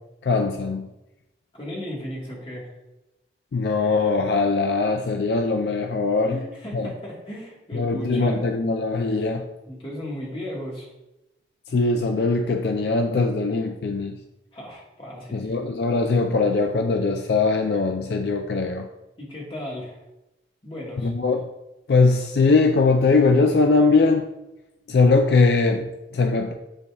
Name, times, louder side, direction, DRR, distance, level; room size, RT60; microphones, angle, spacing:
voice 1, 0.2-0.9 3.5-6.4 6.7-6.9 7.7-9.5 11.7-14.2 15.3-18.9 21.0-21.4 21.9-24.3 24.9-26.5, left 3 dB, 65° left, 5 dB, 0.4 m, -21 dB
voice 2, 1.5-2.7 6.3-8.4 9.7-10.9 14.5-15.5 19.2-20.0 20.6-21.1, equal, 30° left, -4 dB, 1.5 m, -35 dB
10.0 x 4.0 x 2.3 m, 0.96 s
head